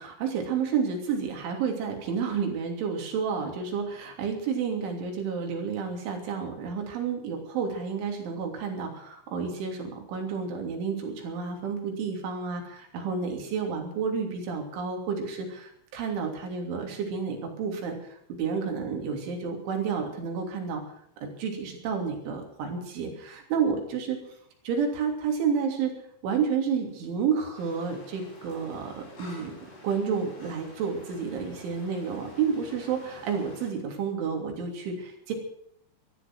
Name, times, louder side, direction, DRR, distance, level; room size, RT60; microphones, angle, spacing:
voice 1, 0.0-20.8 21.2-24.2 24.7-25.9 26.2-29.5 29.8-35.3, right 6 dB, 85° right, 3 dB, 5.5 m, -30 dB
sound 1, 27.5-33.7, left 1 dB, 65° left, 8.8 m, -49 dB
16.0 x 13.5 x 6.2 m, 0.69 s
omnidirectional pair, 5.3 m